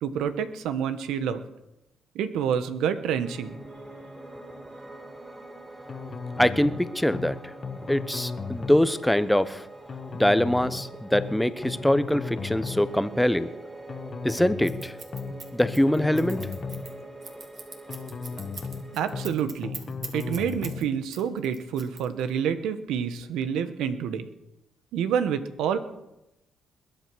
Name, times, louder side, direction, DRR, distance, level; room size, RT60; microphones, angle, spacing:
voice 1, 0.0-1.4 2.1-3.6 18.9-19.7 20.1-24.3 24.9-25.8, right 8 dB, 85° right, 11 dB, 1.1 m, -28 dB
Piano, 3.1-19.3, right 2 dB, 20° right, 4.3 m, -44 dB
sound 1, 5.9-6.8 7.1-7.3 7.6-8.9 9.9-10.8 11.1-11.3 11.6-12.9 13.9-14.8 15.1-15.3 15.6-16.9 17.9-18.8 19.1-19.3 19.6-20.9, left 5 dB, 40° left, 1.1 m, -35 dB
voice 2, 6.4-7.5 7.9-9.6 10.2-13.5 14.2-14.9 15.5-16.4, left 1 dB, 5° left, 13 dB, 0.9 m, -23 dB
Scissors, 14.6-20.8 21.1-22.4, right 5 dB, 50° right, 2.8 m, -42 dB
21.5 x 9.0 x 6.2 m, 0.92 s
cardioid pair, 90°, 0 cm